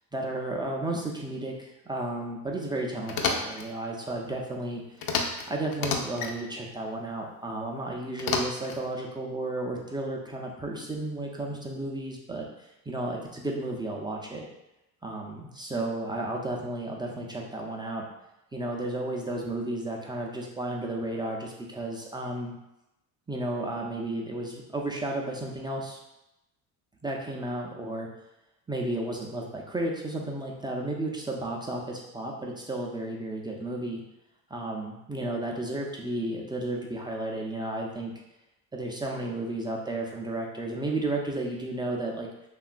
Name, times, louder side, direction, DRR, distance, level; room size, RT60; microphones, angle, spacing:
voice 1, 0.1-4.8 5.5-14.4 15.0-18.0 18.5-22.5 23.3-26.0 27.0-28.1 28.7-34.0 34.5-38.1 38.7-42.3, right 1 dB, 10° right, -1 dB, 0.3 m, -33 dB
sound 1, 3.1-3.7 5.0-5.5 5.7-6.3 8.2-8.8, left 4 dB, 55° left, 0.5 m, -29 dB
2.8 x 2.3 x 2.4 m, 0.93 s
supercardioid pair, 70°, 43 cm